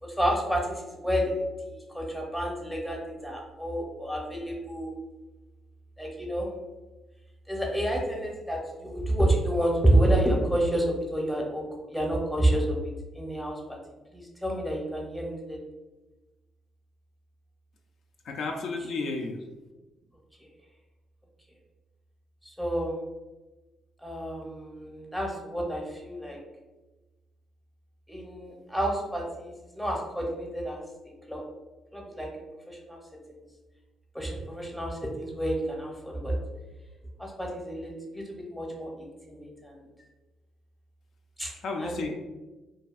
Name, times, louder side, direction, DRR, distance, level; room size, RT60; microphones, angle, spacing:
voice 1, 0.0-1.3 1.7-5.0 6.0-6.5 7.5-11.6 11.9-13.8 14.1-15.6 20.4-20.5 22.4-22.9 24.0-26.4 28.1-30.8 31.3-31.4 31.9-32.3 32.7-33.0 33.3-33.4 34.1-36.4 37.2-39.8 41.4-41.5 41.8-42.0, right 1 dB, ahead, -1 dB, 0.7 m, -29 dB
voice 2, 18.2-19.4 41.6-42.1, left 3 dB, 70° left, 2 dB, 0.3 m, -32 dB
2.6 x 2.4 x 2.4 m, 1.1 s
cardioid pair, 90°, 0 cm